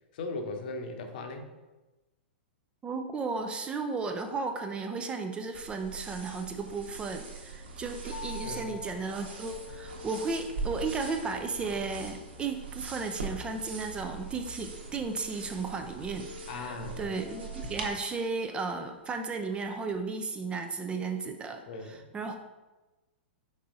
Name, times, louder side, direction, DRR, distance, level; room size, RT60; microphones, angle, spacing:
voice 1, 0.1-1.5 8.4-8.8 16.5-17.2 21.7-22.0, left 3 dB, 55° left, 5 dB, 0.9 m, -38 dB
voice 2, 2.8-22.4, right 4 dB, 15° right, 6 dB, 0.5 m, -34 dB
sound 1, 5.5-17.9, right 4 dB, 65° right, 1.2 m, -42 dB
sound 2, 8.1-20.0, left 8 dB, 70° left, 0.5 m, -51 dB
5.4 x 4.6 x 3.7 m, 1.1 s
figure-of-eight pair, 105°, 6 cm